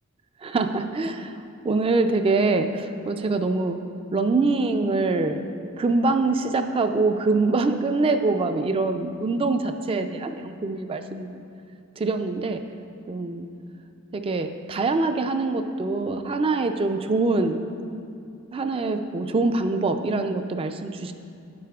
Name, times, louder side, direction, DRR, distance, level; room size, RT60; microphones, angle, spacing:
voice 1, 0.4-1.3 1.6-3.8 4.1-5.4 5.8-11.5 12.0-12.6 13.1-13.5 14.1-17.6 18.5-21.1, right 3 dB, 25° right, 7 dB, 0.3 m, -24 dB
9.5 x 8.2 x 2.3 m, 2.5 s
head